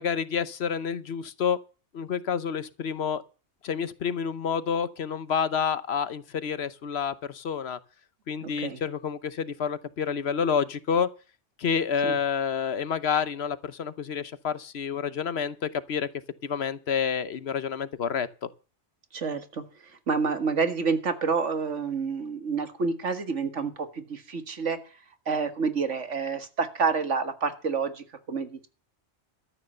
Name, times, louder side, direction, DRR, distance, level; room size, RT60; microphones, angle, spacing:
voice 1, 0.0-1.6 1.9-3.2 3.6-7.8 8.3-11.1 11.6-16.1 16.4-18.5, left 7 dB, 65° left, 1.1 m, -29 dB
voice 2, 8.4-8.8 12.0-12.1 19.1-19.6 20.1-24.8 25.3-28.7, right 5 dB, 80° right, 1.9 m, -28 dB
13.5 x 9.1 x 6.7 m
omnidirectional pair, 1.2 m